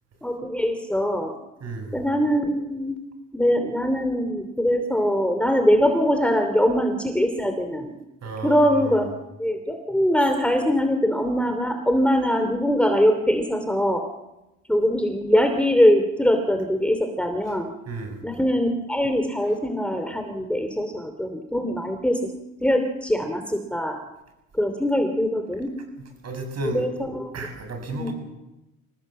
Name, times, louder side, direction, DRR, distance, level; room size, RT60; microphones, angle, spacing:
voice 1, 0.2-1.3 1.9-3.0 3.3-7.9 8.4-9.1 9.4-14.0 14.7-17.7 18.2-22.3 22.6-24.0 24.6-25.7 26.7-27.5 27.9-28.1, equal, 5° left, 6 dB, 2.8 m, -22 dB
voice 2, 1.6-2.0 8.2-9.0 17.9-18.2 26.2-26.8 27.3-28.1, right 3 dB, 55° right, 5 dB, 7.2 m, -32 dB
26.0 x 18.5 x 7.6 m, 0.98 s
cardioid pair, 90°, 30 cm